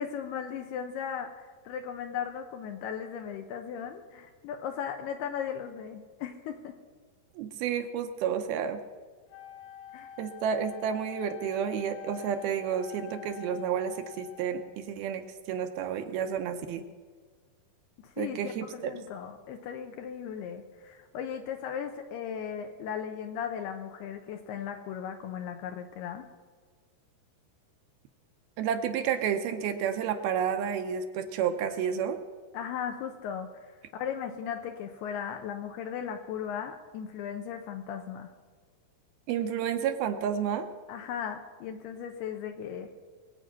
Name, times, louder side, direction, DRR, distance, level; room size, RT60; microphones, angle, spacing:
voice 1, 0.0-6.8 9.9-10.1 18.0-26.3 32.5-38.3 40.9-42.9, left 8 dB, 80° left, 5 dB, 2.7 m, -37 dB
voice 2, 7.4-8.8 10.2-15.2 15.5-16.8 18.2-18.9 28.6-32.2 39.3-40.7, right 8 dB, 80° right, 7 dB, 2.5 m, -30 dB
Wind instrument woodwind instrument, 9.3-14.8, left 13 dB, 65° left, 1.3 m, -46 dB
22.0 x 8.5 x 5.7 m, 1.5 s
omnidirectional pair, 4.8 m